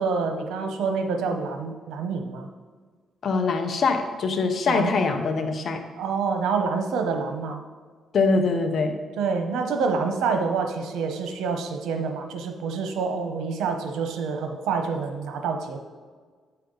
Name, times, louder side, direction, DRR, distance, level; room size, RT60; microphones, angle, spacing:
voice 1, 0.0-2.5 4.7-5.0 6.0-7.6 9.2-15.8, right 5 dB, 85° right, 5 dB, 0.9 m, -27 dB
voice 2, 3.2-5.8 8.1-9.0, left 4 dB, 50° left, 6 dB, 1.0 m, -23 dB
9.1 x 5.8 x 4.0 m, 1.5 s
cardioid pair, 90°, 0 cm